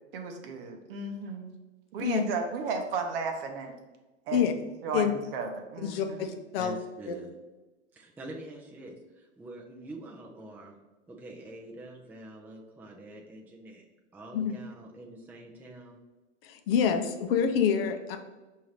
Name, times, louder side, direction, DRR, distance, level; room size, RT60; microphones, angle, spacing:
voice 1, 0.1-1.5 1.9-3.7 4.3-4.5 4.8-6.3, right 4 dB, 50° right, 4 dB, 0.9 m, -34 dB
voice 2, 5.8-6.7 7.1-7.2 14.3-14.6 16.4-18.2, left 7 dB, 50° left, 6 dB, 0.6 m, -27 dB
voice 3, 6.6-7.3 7.9-10.8 11.1-13.8 14.1-16.0, right 1 dB, 5° right, -1 dB, 0.5 m, -45 dB
5.6 x 2.7 x 3.2 m, 1.1 s
hypercardioid pair, 100°, 36 cm